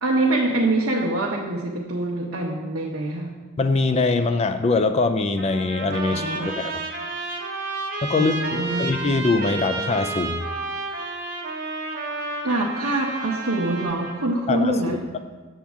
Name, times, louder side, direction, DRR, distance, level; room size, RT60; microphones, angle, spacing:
voice 1, 0.0-3.3 6.1-6.5 8.2-8.9 12.4-15.1, right 2 dB, 75° right, -3 dB, 0.9 m, -24 dB
voice 2, 3.6-6.7 8.0-10.4 14.5-15.0, left 3 dB, 30° left, 8 dB, 0.4 m, -23 dB
Trumpet, 5.4-14.3, right 3 dB, 40° right, 1.1 m, -31 dB
7.3 x 7.2 x 3.5 m, 1.3 s
head